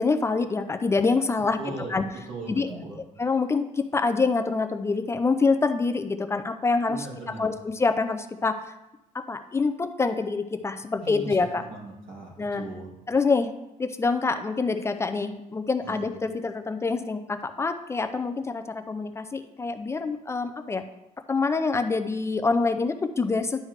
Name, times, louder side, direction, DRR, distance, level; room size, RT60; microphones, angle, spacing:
voice 1, 0.0-2.0 2.5-8.7 9.1-11.6 12.4-12.7 13.1-13.5 13.8-20.8 21.3-23.6, left 4 dB, 20° left, 8 dB, 0.3 m, -26 dB
voice 2, 1.5-3.0 6.9-7.5 11.0-12.9 15.8-16.1, right 2 dB, 85° right, -4 dB, 2.8 m, -39 dB
11.0 x 4.8 x 3.2 m, 0.93 s
cardioid pair, 165°, 14 cm